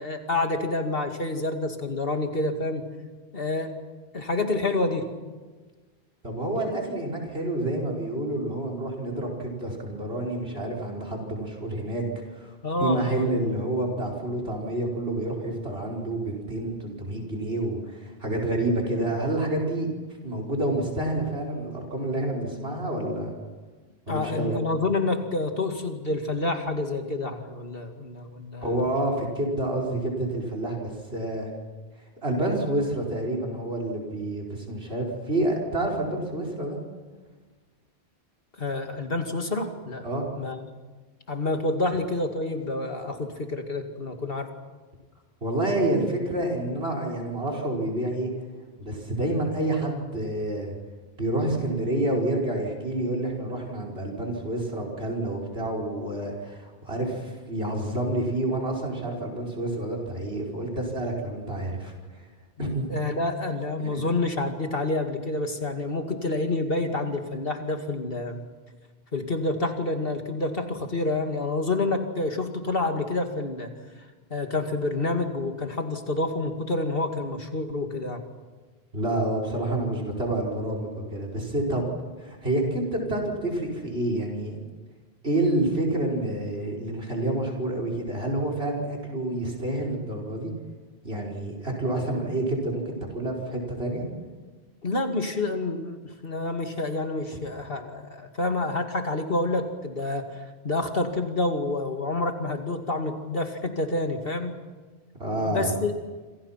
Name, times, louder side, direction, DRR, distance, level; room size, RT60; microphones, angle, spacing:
voice 1, 0.0-2.8 3.3-3.7 4.1-5.1 12.6-13.3 24.1-28.7 38.6-40.1 40.4-40.6 41.3-44.5 62.9-68.5 69.1-73.7 74.0-74.1 74.3-78.2 94.8-104.5 105.4-105.9, left 2 dB, 60° left, 4 dB, 2.7 m, -28 dB
voice 2, 6.2-12.6 12.8-19.9 20.2-23.3 24.1-24.5 28.6-31.5 32.2-36.8 40.0-40.3 45.4-48.3 48.8-50.7 51.2-61.9 62.6-62.9 63.8-64.0 78.9-81.9 82.2-84.6 85.2-90.5 91.0-94.1 105.2-105.7, right 1 dB, 70° right, 1 dB, 5.4 m, -28 dB
27.0 x 27.0 x 5.9 m, 1.3 s
omnidirectional pair, 1.1 m